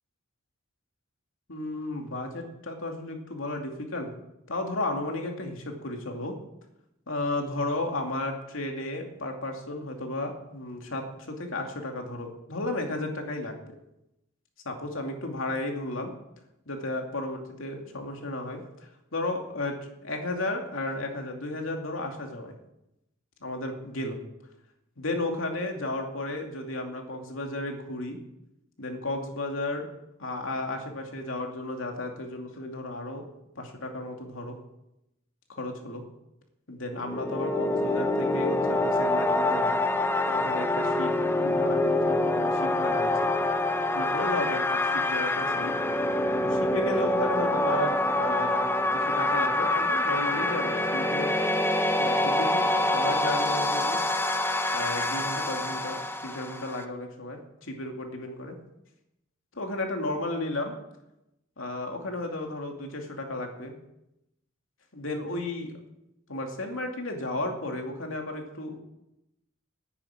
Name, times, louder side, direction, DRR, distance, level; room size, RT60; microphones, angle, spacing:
voice 1, 1.5-4.1 4.5-6.4 7.1-13.7 14.6-16.1 16.7-22.6 23.4-24.2 25.0-28.2 28.8-29.9 30.2-33.3 33.6-34.6 35.5-36.0 36.7-39.8 40.3-41.1 41.4-43.3 43.9-45.7 46.4-51.4 52.0-54.0 54.7-58.6 59.5-60.7 61.6-63.7 64.9-65.7 66.3-68.8, left 2 dB, 80° left, 3 dB, 2.6 m, -33 dB
sound 1, 37.0-56.8, left 1 dB, 10° left, 0.7 m, -26 dB
10.5 x 9.9 x 8.8 m, 0.87 s
head